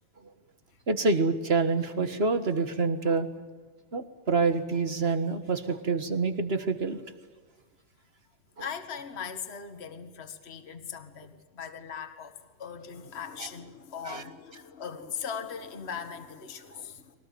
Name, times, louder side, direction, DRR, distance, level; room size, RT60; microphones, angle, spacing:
voice 1, 0.9-3.3 3.9-7.0 14.0-14.2, right 4 dB, 30° right, 10 dB, 1.5 m, -27 dB
voice 2, 8.6-17.1, left 7 dB, 30° left, 7 dB, 1.9 m, -39 dB
23.5 x 19.0 x 9.4 m, 1.4 s
omnidirectional pair, 2.3 m